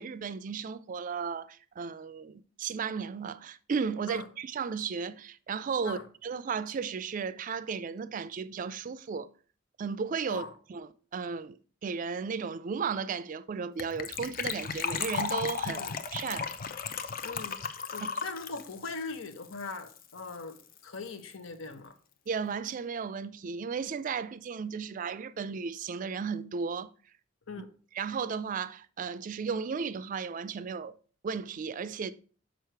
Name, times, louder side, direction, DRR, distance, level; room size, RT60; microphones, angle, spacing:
voice 1, 0.0-9.3 9.8-10.4 10.7-16.5 18.0-18.1 22.3-26.9 27.9-31.0 31.2-32.1, right 5 dB, 40° right, 0.3 m, -35 dB
Gurgling / Trickle dribble / Fill (with liquid), 13.8-20.0 20.3-20.4 20.6-20.8 21.1-21.2, left 6 dB, 45° left, 0.6 m, -35 dB
voice 2, 17.2-22.0 27.5-27.7, left 3 dB, 85° left, 1.0 m, -41 dB
6.5 x 5.2 x 4.5 m
head